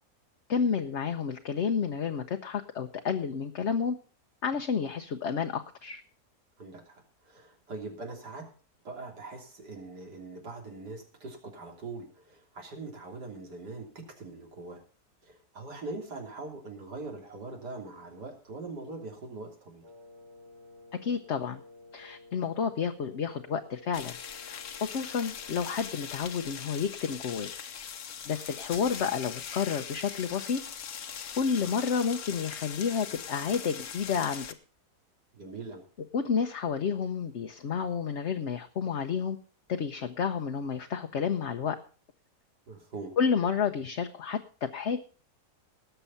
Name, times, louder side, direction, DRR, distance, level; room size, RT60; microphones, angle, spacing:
voice 1, 0.5-4.0 4.4-6.0 21.0-21.6 21.9-24.2 24.5-27.5 28.2-30.6 31.4-34.4 36.1-39.4 39.7-41.8 43.2-44.4 44.7-45.0, left 6 dB, 50° left, 5 dB, 1.0 m, -30 dB
voice 2, 6.6-8.5 8.8-14.8 15.2-19.8 35.3-35.8 42.7-43.2, right 3 dB, 85° right, 2 dB, 3.7 m, -42 dB
Wind instrument woodwind instrument, 19.8-26.6, left 2 dB, 50° right, 1.8 m, -53 dB
sound 1, 23.9-34.5, left 8 dB, 70° left, 1.5 m, -41 dB
19.0 x 6.9 x 5.6 m, 0.38 s
omnidirectional pair, 1.7 m